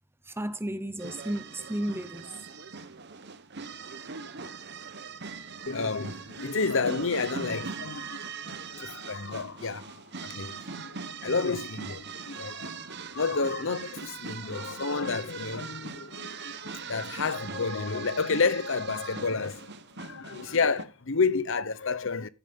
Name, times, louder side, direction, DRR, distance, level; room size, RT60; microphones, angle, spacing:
voice 1, 0.3-2.3, right 1 dB, 10° right, 0.8 m, -33 dB
sound 1, 1.0-20.8, right 5 dB, 50° right, 1.2 m, -41 dB
voice 2, 5.7-22.3, left 4 dB, 60° left, 0.9 m, -30 dB
15.0 x 7.3 x 5.3 m
head